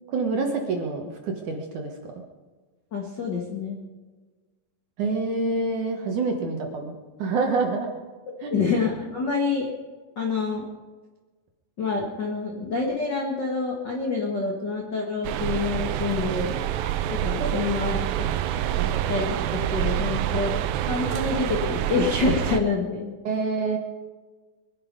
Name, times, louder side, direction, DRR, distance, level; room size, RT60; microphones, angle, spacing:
voice 1, 0.1-1.9 5.0-7.9 8.4-8.6 18.8-19.2 23.2-23.8, right 3 dB, 60° right, 2 dB, 2.2 m, -27 dB
voice 2, 2.9-3.8 8.5-9.7 10.1-10.7 11.8-16.6 17.1-18.3 19.1-19.3 19.7-20.5 20.8-23.1, left 4 dB, 80° left, -1 dB, 1.0 m, -27 dB
sound 1, 15.2-22.6, right 12 dB, 80° right, 2.8 m, -27 dB
23.5 x 11.0 x 5.3 m, 1.3 s
omnidirectional pair, 5.1 m